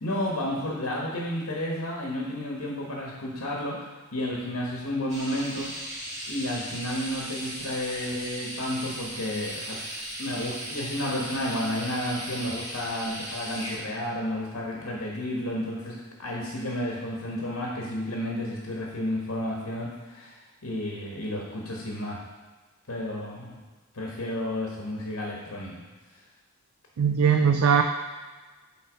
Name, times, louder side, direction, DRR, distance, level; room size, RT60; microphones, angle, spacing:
voice 1, 0.0-3.8 4.1-5.7 6.2-9.8 10.2-20.4 20.6-22.2 22.9-23.6 23.9-25.8, left 1 dB, 70° left, -3 dB, 1.4 m, -31 dB
sound 1, 5.1-13.8, right 1 dB, 35° right, 2.0 m, -37 dB
voice 2, 27.0-27.8, right 7 dB, 75° right, 6 dB, 0.4 m, -20 dB
8.3 x 3.9 x 5.1 m, 1.3 s
head